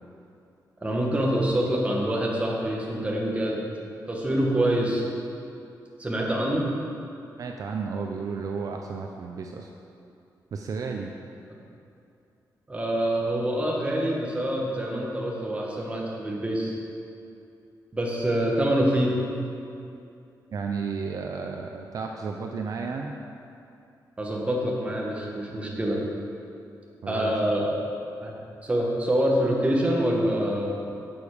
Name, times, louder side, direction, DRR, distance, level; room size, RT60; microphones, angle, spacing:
voice 1, 0.8-3.6 4.1-5.0 6.0-6.7 12.7-16.7 17.9-19.1 24.2-26.0 27.1-27.7 28.2-28.3 28.6-30.7, right 1 dB, 15° right, -2 dB, 1.5 m, -25 dB
voice 2, 7.4-9.7 10.5-11.1 20.5-23.1 27.0-27.4, right 5 dB, 55° right, 2 dB, 0.6 m, -32 dB
11.0 x 7.1 x 5.0 m, 2.6 s
wide cardioid pair, 155°, 7 cm